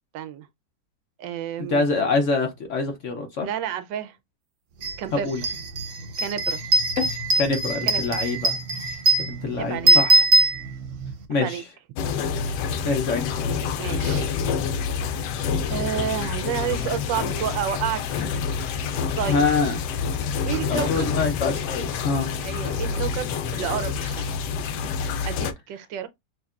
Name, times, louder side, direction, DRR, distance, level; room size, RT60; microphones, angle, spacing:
voice 1, 0.1-0.5 1.2-1.8 3.4-4.2 5.0-5.3 6.2-6.6 7.8-8.2 9.6-10.0 11.3-11.6 13.8-14.3 15.7-18.4 19.2-19.5 20.4-21.1 22.4-24.3 25.2-26.1, right 9 dB, 90° right, 1.4 m, -30 dB
voice 2, 1.6-3.5 5.1-5.4 7.0-7.1 7.4-8.6 9.2-10.2 11.3-11.6 12.8-13.6 19.3-19.8 20.7-22.3, left 4 dB, 55° left, 1.0 m, -25 dB
sound 1, 4.8-4.9 5.3-11.1, right 2 dB, 55° right, 1.0 m, -21 dB
sound 2, 12.0-25.5, left 6 dB, 80° left, 1.2 m, -27 dB
6.4 x 2.5 x 2.4 m
omnidirectional pair, 1.9 m